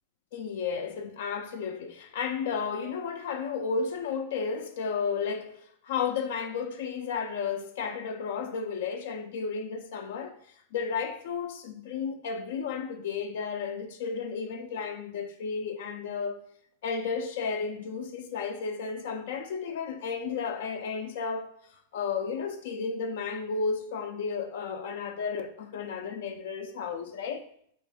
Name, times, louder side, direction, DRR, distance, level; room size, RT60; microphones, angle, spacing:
voice 1, 0.3-10.4 10.7-16.4 16.8-21.5 21.9-27.4, left 5 dB, 70° left, 0.4 m, -33 dB
4.1 x 2.5 x 3.4 m
supercardioid pair, 135°, 0 cm